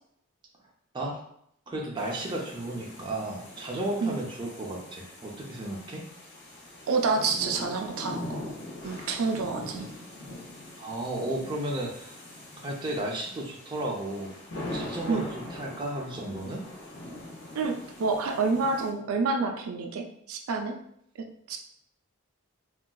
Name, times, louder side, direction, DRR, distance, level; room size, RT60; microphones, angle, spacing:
voice 1, 0.9-1.3 1.7-6.1 10.8-12.2 12.6-16.6, right 1 dB, 20° right, -1 dB, 0.4 m, -34 dB
sound 1, 2.0-18.9, left 1 dB, 55° left, 0.7 m, -42 dB
voice 2, 6.9-8.5 8.8-9.9 15.1-15.2 17.5-20.8 21.5-21.6, right 4 dB, 85° right, 3 dB, 0.4 m, -28 dB
3.8 x 2.3 x 2.2 m, 0.72 s
head